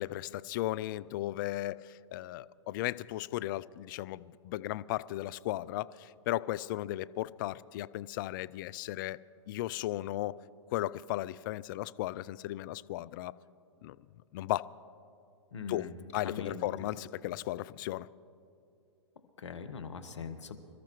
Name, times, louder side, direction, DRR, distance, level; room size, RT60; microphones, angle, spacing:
voice 1, 0.0-9.2 9.5-10.4 10.7-13.3 13.8-14.0 14.3-14.7 15.7-18.1, left 15 dB, 45° left, 0.4 m, -36 dB
voice 2, 15.5-15.9 16.2-16.7 19.4-20.6, left 5 dB, 75° left, 1.3 m, -41 dB
26.5 x 13.5 x 3.1 m
hypercardioid pair, 115°, 15 cm